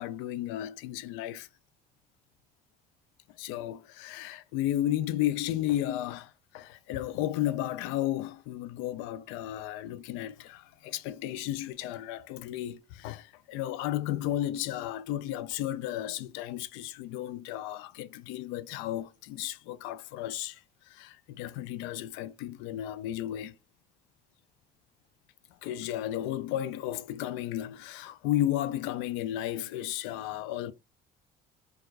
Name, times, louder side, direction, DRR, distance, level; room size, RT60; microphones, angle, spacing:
voice 1, 0.0-1.5 3.4-23.6 25.6-30.7, left 13 dB, 90° left, 0.4 m, -33 dB
4.5 x 2.4 x 2.3 m
cardioid pair, 105°, 20 cm